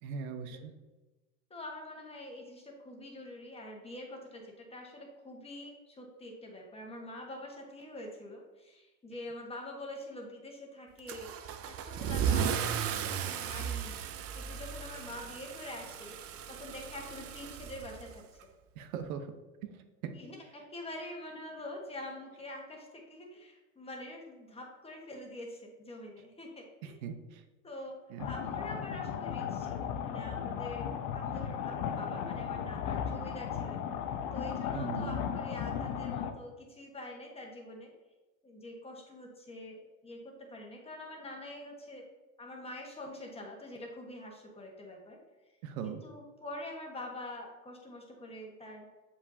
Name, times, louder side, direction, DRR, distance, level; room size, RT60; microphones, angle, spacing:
voice 1, 0.0-0.7 18.7-19.3 19.6-20.1 26.8-27.4 28.1-28.3 34.7-35.2 45.6-46.0, right 6 dB, 80° right, 8 dB, 0.9 m, -40 dB
voice 2, 1.5-14.0 14.3-16.2 16.5-18.2 20.1-26.9 27.6-28.0 28.2-33.8 34.3-37.9 38.4-42.1 42.4-45.2 45.8-48.9, left 1 dB, 15° left, 0 dB, 1.3 m, -45 dB
Car / Engine starting / Accelerating revving vroom, 11.1-18.4, right 8 dB, 35° right, 0.5 m, -35 dB
sound 1, 28.2-36.3, left 8 dB, 70° left, 0.8 m, -36 dB
7.1 x 5.3 x 2.7 m, 1.1 s
supercardioid pair, 120°, 41 cm